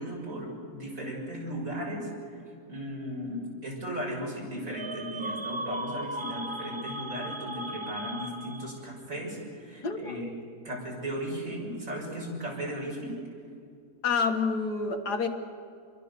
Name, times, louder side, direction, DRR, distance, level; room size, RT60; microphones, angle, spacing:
voice 1, 0.0-10.3 10.6-13.2, equal, 55° right, -2 dB, 7.0 m, -36 dB
sound 1, 4.7-8.9, right 1 dB, 20° right, 0.9 m, -37 dB
voice 2, 9.8-10.2 14.0-15.3, left 5 dB, 75° left, 5 dB, 2.2 m, -28 dB
28.5 x 22.5 x 6.8 m, 2.4 s
omnidirectional pair, 1.7 m